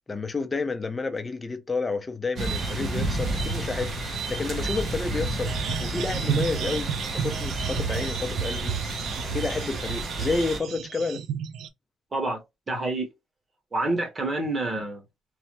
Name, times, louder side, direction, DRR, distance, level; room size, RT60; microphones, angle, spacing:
voice 1, 0.1-3.9 4.3-5.5 5.8-6.9 7.2-8.7 9.2-11.2, left 3 dB, 20° left, 0.5 m, -30 dB
sound 1, 2.4-10.6, right 2 dB, 40° right, 0.7 m, -30 dB
sound 2, 5.4-11.7, right 9 dB, 80° right, 0.4 m, -32 dB
voice 2, 12.7-13.1 13.7-15.0, right 2 dB, 25° right, 1.1 m, -27 dB
3.2 x 2.1 x 2.9 m
cardioid pair, 130°, 0 cm